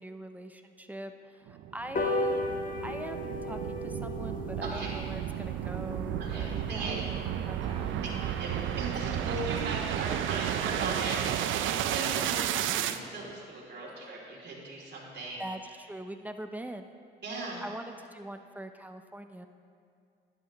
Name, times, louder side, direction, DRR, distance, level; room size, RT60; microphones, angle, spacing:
voice 1, 0.0-2.5 2.8-8.3 15.4-16.9 17.6-19.5, right 1 dB, 10° right, 6 dB, 0.6 m, -43 dB
sound 1, 1.5-13.0, right 11 dB, 80° right, 0.5 m, -33 dB
sound 2, 1.9-8.7 9.1-9.2 9.5-9.6 9.9-10.0 10.3-10.4 10.7-11.0 11.4-11.5, left 2 dB, 45° left, 1.5 m, -37 dB
voice 2, 4.6-4.9 6.2-7.1 7.8-7.9 8.4-11.4 11.9-12.4 12.7-15.4 17.2-17.6, right 2 dB, 60° right, -4 dB, 3.0 m, -38 dB
sound 3, 7.6-13.4, equal, 20° left, 1.4 m, -49 dB
12.5 x 11.0 x 3.0 m, 2.4 s
cardioid pair, 90°, 20 cm